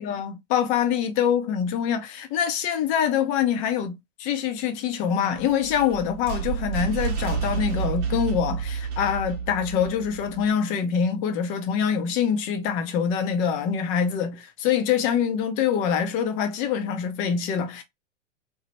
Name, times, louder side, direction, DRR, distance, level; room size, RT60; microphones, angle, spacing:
voice 1, 0.0-17.8, left 8 dB, 20° left, 0.4 m, -25 dB
sound 1, 5.4-10.5, right 6 dB, 30° right, 0.8 m, -30 dB
2.9 x 2.0 x 2.9 m
hypercardioid pair, 110°, 37 cm